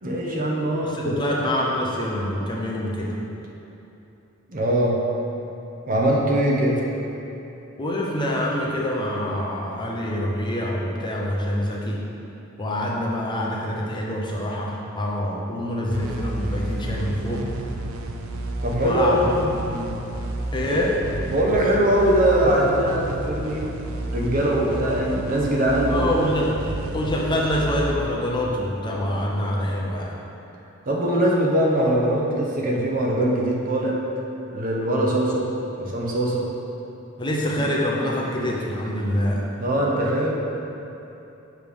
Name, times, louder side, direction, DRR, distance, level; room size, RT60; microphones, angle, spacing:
voice 1, 0.0-1.3 4.5-5.0 5.9-6.8 18.6-19.5 20.7-20.9 21.3-23.6 24.1-26.1 26.4-26.5 30.9-33.9 34.5-35.4 35.8-36.5 39.6-40.4, right 1 dB, 45° right, -2 dB, 0.8 m, -22 dB
voice 2, 0.8-3.1 7.8-12.0 12.6-17.5 18.8-19.3 19.7-19.9 20.5-21.0 25.9-26.5 26.9-30.1 37.2-39.5, left 1 dB, 20° left, -3 dB, 0.6 m, -25 dB
sound 1, 15.9-29.2, right 2 dB, 85° right, 0.5 m, -31 dB
7.0 x 3.2 x 5.2 m, 3.0 s
head